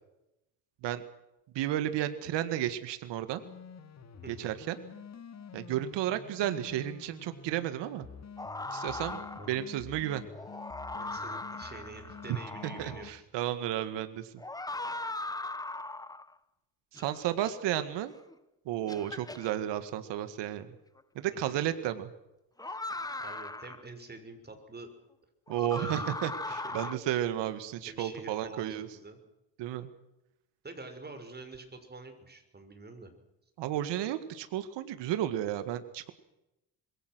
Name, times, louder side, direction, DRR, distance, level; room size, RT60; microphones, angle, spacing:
voice 1, 1.5-3.4 4.3-4.8 5.5-8.1 8.7-9.2 9.5-10.2 12.6-14.3 16.9-18.1 18.7-20.7 21.2-22.1 25.5-28.9 29.6-29.9 33.6-36.1, right 12 dB, 85° right, 10 dB, 2.0 m, -33 dB
sound 1, 3.3-13.1, left 6 dB, 40° left, 2.6 m, -48 dB
voice 2, 4.2-4.5 9.0-9.5 10.9-13.3 21.4-21.6 22.7-22.8 23.2-24.9 25.5-26.1 26.6-27.3 27.9-29.2 30.6-33.1, right 3 dB, 25° right, 7 dB, 6.1 m, -47 dB
sound 2, 8.4-9.6 10.3-13.1 14.4-16.3 17.0-17.5 18.3-18.4 18.9-19.5 21.0-21.1 22.6-23.9 25.5-26.9, left 2 dB, 10° left, 1.1 m, -39 dB
26.0 x 22.5 x 6.3 m, 0.90 s
cardioid pair, 110°, 42 cm